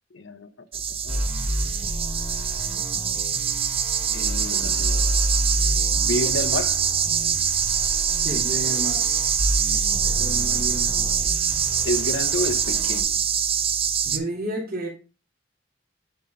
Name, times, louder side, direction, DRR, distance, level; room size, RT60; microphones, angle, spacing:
voice 1, 0.1-1.2 4.1-5.1 6.0-6.8 11.8-13.2, left 2 dB, 90° left, 0.8 m, -30 dB
sound 1, 0.7-14.2, right 8 dB, 30° right, 0.5 m, -24 dB
sound 2, 1.1-13.0, equal, 10° right, 2.0 m, -30 dB
voice 2, 8.2-9.0 10.0-11.1 14.0-14.9, right 1 dB, 55° right, 2.6 m, -31 dB
9.8 x 3.8 x 3.7 m
head